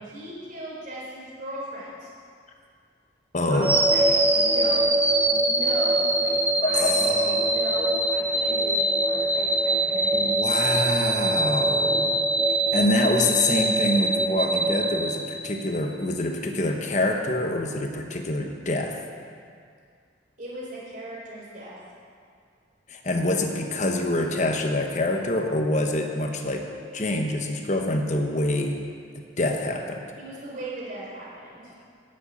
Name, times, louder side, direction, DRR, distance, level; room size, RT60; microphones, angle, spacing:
voice 1, 0.0-2.1 3.5-4.0 4.3-4.8 5.2-6.4 6.6-10.1 20.4-21.8 30.2-31.7, right 1 dB, 45° right, -6 dB, 4.0 m, -37 dB
voice 2, 3.3-3.7 6.6-7.6 10.1-12.1 12.7-19.0 22.9-26.7 26.9-28.8 29.4-30.0, left 2 dB, 40° left, 3 dB, 1.1 m, -26 dB
sound 1, 3.6-15.8, right 1 dB, 10° right, 0.8 m, -23 dB
11.0 x 7.7 x 8.5 m, 2.2 s
head